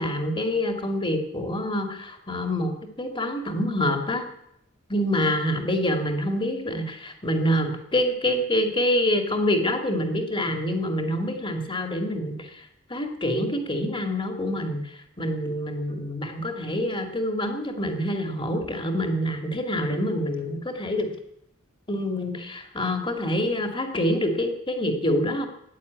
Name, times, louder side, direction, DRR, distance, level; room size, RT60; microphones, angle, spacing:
voice 1, 0.0-2.7 3.0-4.3 4.9-21.1 21.9-25.5, left 1 dB, 25° left, 5 dB, 2.4 m, -26 dB
15.0 x 9.6 x 9.5 m, 0.77 s
head